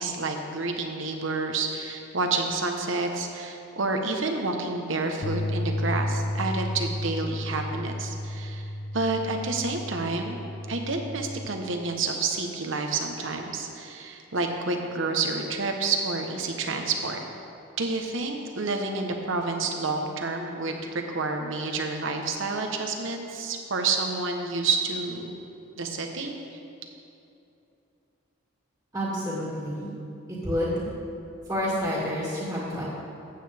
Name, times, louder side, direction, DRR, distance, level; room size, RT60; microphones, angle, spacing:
voice 1, 0.0-8.7 8.9-10.4 10.7-17.2 17.8-25.3 25.8-26.3, right 3 dB, 65° right, 3 dB, 1.1 m, -29 dB
sound 1, 5.2-11.5, left 1 dB, 50° left, 0.5 m, -32 dB
voice 2, 28.9-29.9 30.3-30.9 31.5-32.9, equal, 15° right, -8 dB, 2.2 m, -29 dB
14.5 x 8.7 x 3.5 m, 2.7 s
head